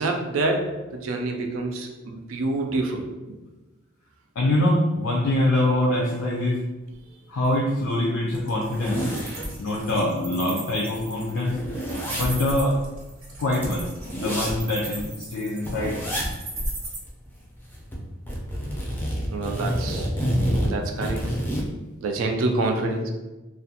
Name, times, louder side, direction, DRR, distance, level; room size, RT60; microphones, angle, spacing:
voice 1, 0.0-3.1 19.3-20.1 20.7-21.2 22.0-23.1, right 2 dB, 75° right, 3 dB, 0.3 m, -27 dB
voice 2, 4.4-6.6 7.3-9.0 9.6-11.6 12.2-12.8 13.4-13.9 14.1-16.0, left 1 dB, 80° left, -3 dB, 0.4 m, -24 dB
sound 1, 7.4-7.5 7.9-8.0 8.4-10.0 10.4-10.5 10.7-15.1 15.6-16.3 16.6-16.7 17.1-18.0 18.3-21.7, equal, 10° left, 0.4 m, -29 dB
Wild animals, 8.3-17.0, right 3 dB, 90° right, 0.8 m, -38 dB
2.4 x 2.1 x 2.7 m, 1.1 s
head